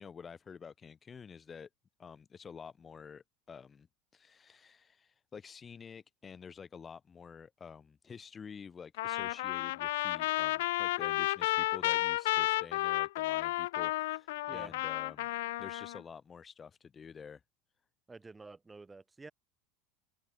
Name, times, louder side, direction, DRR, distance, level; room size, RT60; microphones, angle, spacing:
voice 1, 0.0-1.7 2.0-3.9 4.1-15.3 15.6-17.4, left 6 dB, 20° left, 0.8 m, -49 dB
Trumpet, 9.0-16.0, left 18 dB, 80° left, 0.3 m, -32 dB
voice 2, 18.1-19.3, right 3 dB, 10° right, 5.5 m, -49 dB
open air
supercardioid pair, 145°, 0 cm